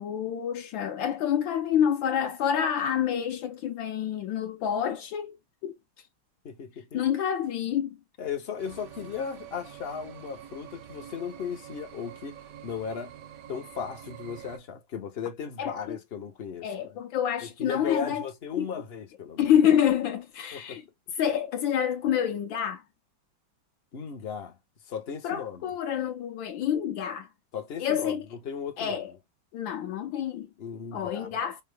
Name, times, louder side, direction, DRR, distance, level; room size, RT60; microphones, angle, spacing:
voice 1, 0.0-5.4 5.6-5.8 6.9-8.0 15.6-16.0 16.6-18.2 18.6-18.7 19.4-20.8 21.2-22.8 25.2-27.3 27.8-28.2 28.8-29.1 29.5-30.5 30.9-31.6, left 9 dB, 75° left, 1.4 m, -27 dB
voice 2, 6.4-7.1 8.2-13.1 13.5-16.9 17.4-19.5 20.5-20.8 23.9-24.6 24.9-25.7 27.5-28.2 28.4-29.0 30.6-31.3, left 6 dB, 55° left, 0.7 m, -36 dB
sound 1, 8.6-14.6, right 10 dB, 65° right, 0.8 m, -46 dB
5.5 x 2.1 x 3.4 m
omnidirectional pair, 2.2 m